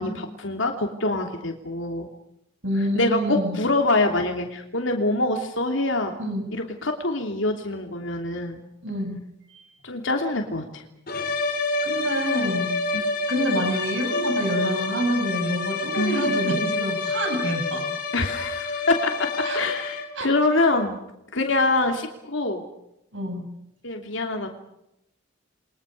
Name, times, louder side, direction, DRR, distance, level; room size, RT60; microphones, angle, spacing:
voice 1, 0.0-2.1 2.8-6.2 6.5-8.6 9.8-10.8 12.9-13.1 15.9-16.2 18.1-19.3 19.5-21.0 21.3-22.6 23.8-24.5, left 2 dB, 75° left, 3 dB, 3.0 m, -25 dB
voice 2, 2.6-3.6 6.2-6.5 8.8-9.2 9.5-9.7 11.8-12.7 13.3-17.9 19.4-19.6 20.2-20.3 23.1-23.5, right 1 dB, 75° right, 5 dB, 7.7 m, -27 dB
sound 1, 11.1-20.3, left 3 dB, 50° left, 4.2 m, -28 dB
29.5 x 23.0 x 6.7 m, 0.82 s
head